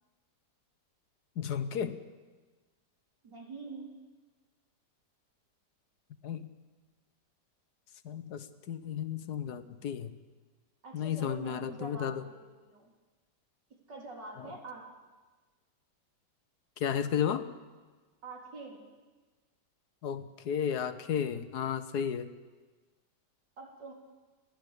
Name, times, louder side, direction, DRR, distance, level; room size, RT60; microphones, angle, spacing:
voice 1, 1.4-2.0 6.2-6.5 8.0-10.1 10.9-12.2 16.8-17.4 20.0-22.3, left 8 dB, 70° left, 12 dB, 1.5 m, -33 dB
voice 2, 3.2-3.9 10.8-12.9 13.9-14.8 18.2-18.8 23.6-23.9, right 3 dB, 85° right, 0 dB, 4.4 m, -45 dB
30.0 x 11.5 x 8.3 m, 1.3 s
omnidirectional pair, 1.8 m